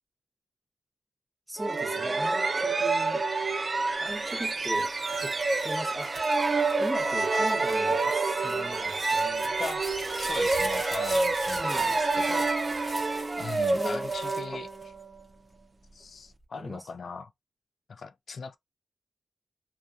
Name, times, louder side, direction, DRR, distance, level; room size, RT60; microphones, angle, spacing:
voice 1, 1.5-3.7 4.0-4.9 5.2-5.4 5.6-6.2 6.8-9.5 11.5-12.0 13.4-14.1 16.5-16.9, right 1 dB, 10° right, 0.9 m, -39 dB
sound 1, 1.6-15.1, right 3 dB, 40° right, 0.3 m, -28 dB
sound 2, 4.0-15.3 15.9-16.4, left 1 dB, 15° left, 1.0 m, -44 dB
voice 2, 9.6-12.9 13.4-14.7 15.9-17.3 17.9-18.6, left 4 dB, 65° left, 0.4 m, -40 dB
2.5 x 2.4 x 2.3 m
wide cardioid pair, 120°, 0 cm